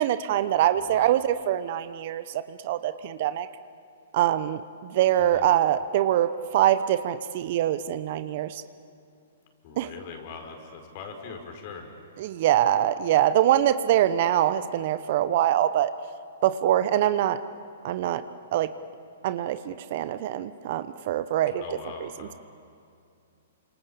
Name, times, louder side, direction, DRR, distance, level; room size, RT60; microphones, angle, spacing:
voice 1, 0.0-3.5 4.1-8.6 9.8-9.9 12.2-15.9 16.4-17.4 17.8-18.2 18.5-18.7 19.2-21.6 22.0-22.1, right 12 dB, 50° right, 13 dB, 1.0 m, -24 dB
voice 2, 0.8-1.2 5.2-5.5 9.6-11.9 21.6-22.4, left 5 dB, 45° left, 3 dB, 5.0 m, -42 dB
28.5 x 26.5 x 7.0 m, 2.4 s
hypercardioid pair, 120°, 0 cm